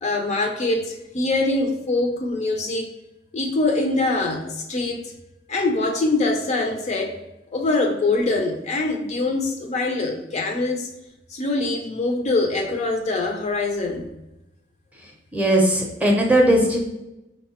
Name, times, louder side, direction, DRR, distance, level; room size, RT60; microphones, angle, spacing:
voice 1, 0.0-2.9 3.3-5.0 5.5-7.2 7.5-10.9 11.3-14.1, left 2 dB, 40° left, 3 dB, 0.4 m, -23 dB
voice 2, 15.3-16.8, right 1 dB, 10° right, 0 dB, 0.6 m, -18 dB
4.1 x 2.1 x 2.7 m, 0.93 s
head